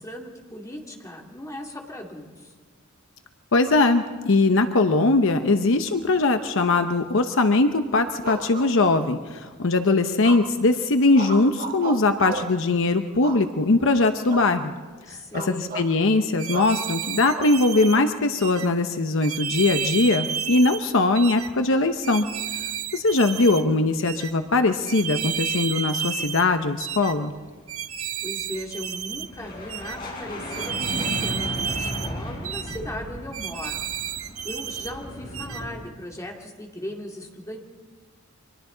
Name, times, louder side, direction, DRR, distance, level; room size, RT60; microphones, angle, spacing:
voice 1, 0.0-2.5 15.1-15.7 28.2-33.8 34.2-37.6, left 1 dB, 15° left, 0 dB, 2.5 m, -37 dB
voice 2, 3.5-14.7 15.3-22.3 22.9-27.3, left 3 dB, 65° left, 7 dB, 0.8 m, -21 dB
sound 1, 8.2-9.2 10.2-10.7 11.1-12.6 13.2-13.8 14.3-14.5 14.8-15.0 15.3-15.9 16.5-16.8 17.4-18.1, right 3 dB, 45° right, 1.9 m, -34 dB
sound 2, 16.4-18.0 18.4-18.7 19.2-20.8 21.2-21.5 22.0-23.6 24.0-24.3 24.9-26.5 26.8-27.1 27.7-29.3 29.7-30.0 30.5-32.1 32.4-32.8 33.3-34.9 35.3-35.6, right 8 dB, 85° right, 0.9 m, -31 dB
sound 3, 21.8-22.6 22.8-23.7 24.0-35.8, equal, 45° left, 5.8 m, -36 dB
29.5 x 24.5 x 3.9 m, 1.4 s
head